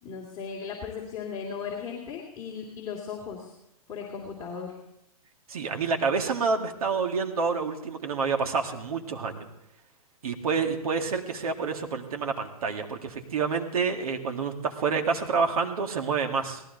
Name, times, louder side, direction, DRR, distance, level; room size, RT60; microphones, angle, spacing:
voice 1, 0.0-3.5 3.9-4.7, left 6 dB, 20° left, -3 dB, 2.8 m, -37 dB
voice 2, 5.5-9.5 10.2-16.6, right 5 dB, 70° right, 4 dB, 2.1 m, -28 dB
18.0 x 14.5 x 4.0 m, 0.83 s
hypercardioid pair, 140°, 20 cm